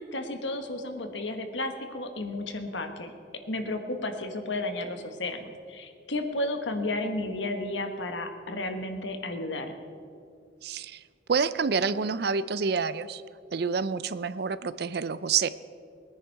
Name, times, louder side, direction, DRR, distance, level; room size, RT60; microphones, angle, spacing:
voice 1, 0.0-3.1 3.5-9.7, left 2 dB, 85° left, 6 dB, 1.4 m, -33 dB
voice 2, 10.6-11.0 11.3-13.2 13.5-15.5, right 5 dB, 60° right, 15 dB, 0.5 m, -28 dB
21.5 x 10.0 x 4.7 m, 2.3 s
head